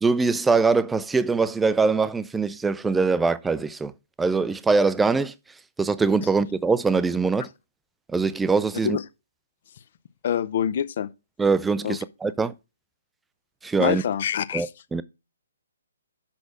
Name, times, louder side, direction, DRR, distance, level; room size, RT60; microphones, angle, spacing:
voice 1, 0.0-3.9 4.2-5.3 5.8-7.5 8.1-9.0 11.4-12.5 13.6-14.0 14.5-15.0, right 4 dB, 5° right, 0.4 m, -22 dB
voice 2, 10.2-11.1 11.8-12.0 13.8-14.7, left 9 dB, 45° left, 0.6 m, -25 dB
6.1 x 6.0 x 6.3 m
figure-of-eight pair, 130°, 0 cm